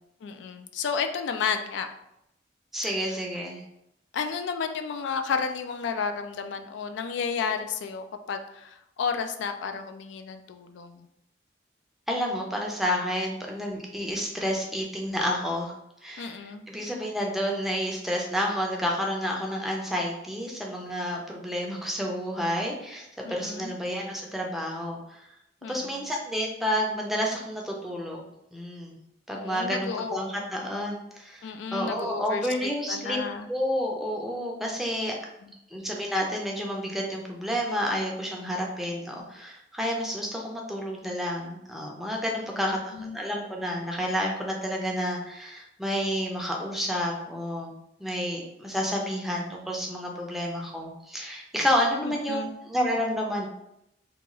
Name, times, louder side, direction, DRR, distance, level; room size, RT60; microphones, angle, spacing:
voice 1, 0.2-1.9 3.0-3.1 4.1-11.1 16.2-16.6 23.3-23.7 25.6-26.0 29.3-30.2 31.4-32.5 32.9-33.5 35.4-35.5 42.5-43.2 52.0-52.5, left 5 dB, 75° left, 8 dB, 0.3 m, -32 dB
voice 2, 2.7-3.6 12.1-15.7 16.0-25.3 25.7-29.0 29.3-33.2 33.5-35.2 35.7-47.7 48.0-53.5, equal, ahead, -1 dB, 0.5 m, -30 dB
2.9 x 2.3 x 3.8 m, 0.81 s
head